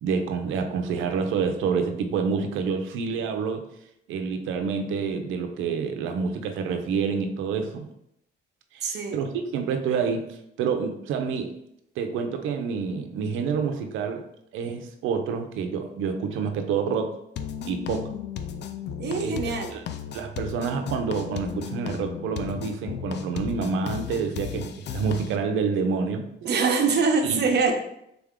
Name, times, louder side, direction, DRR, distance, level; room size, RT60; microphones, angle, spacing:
voice 1, 0.0-3.7 4.1-7.9 8.7-11.5 12.0-14.2 14.5-17.1 17.6-18.1 19.2-19.4 19.7-19.8 20.1-26.2 27.3-27.4, right 5 dB, 90° right, 6 dB, 0.6 m, -28 dB
voice 2, 8.8-9.2 19.0-19.7 26.4-27.7, right 5 dB, 60° right, 3 dB, 0.9 m, -24 dB
sound 1, 17.4-25.4, left 8 dB, 60° left, 0.5 m, -35 dB
3.8 x 3.5 x 3.6 m, 0.78 s
cardioid pair, 90°, 20 cm